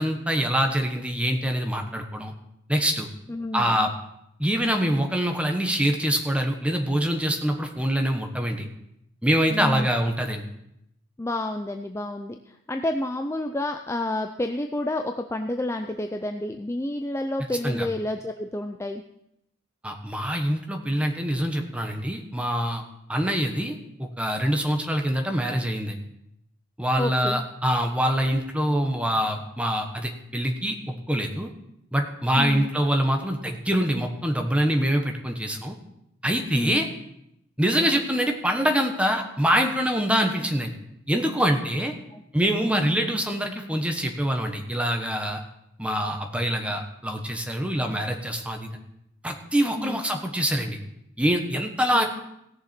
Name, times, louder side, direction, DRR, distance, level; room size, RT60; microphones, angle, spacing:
voice 1, 0.0-2.3 2.7-3.1 3.5-3.9 4.4-8.7 9.2-10.4 17.6-17.9 19.8-22.8 23.1-26.0 26.8-31.5 31.9-35.8 36.2-36.9 37.6-40.7 41.1-41.9 42.3-45.4 45.8-48.7 49.2-50.8 51.2-52.0, equal, 5° right, 4 dB, 1.2 m, -25 dB
voice 2, 3.3-3.9 9.5-9.9 11.2-19.0 27.0-27.4 32.4-32.7 36.5-36.9 42.1-42.2 49.8-50.0 51.9-52.0, left 1 dB, 15° left, 5 dB, 0.4 m, -30 dB
17.5 x 6.9 x 4.4 m, 0.79 s
head